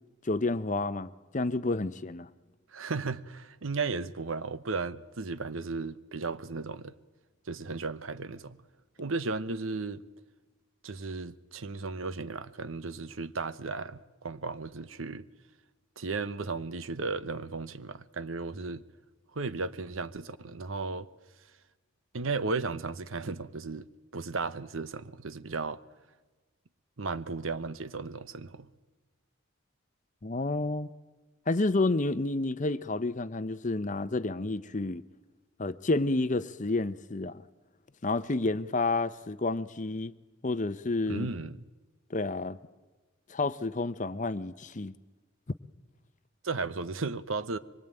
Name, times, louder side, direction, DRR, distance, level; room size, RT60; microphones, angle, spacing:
voice 1, 0.2-1.1 1.3-2.3 30.2-30.9 31.5-35.0 35.6-37.4 38.0-40.1 40.4-41.3 42.1-42.6 43.3-44.9, left 2 dB, 35° left, 0.7 m, -30 dB
voice 2, 2.7-6.9 7.5-8.6 9.0-10.0 10.8-15.3 16.0-18.8 19.3-21.1 22.1-23.9 24.1-25.8 27.0-28.7 41.1-41.7 46.4-47.6, right 4 dB, 75° right, 1.0 m, -35 dB
24.5 x 22.0 x 8.9 m
head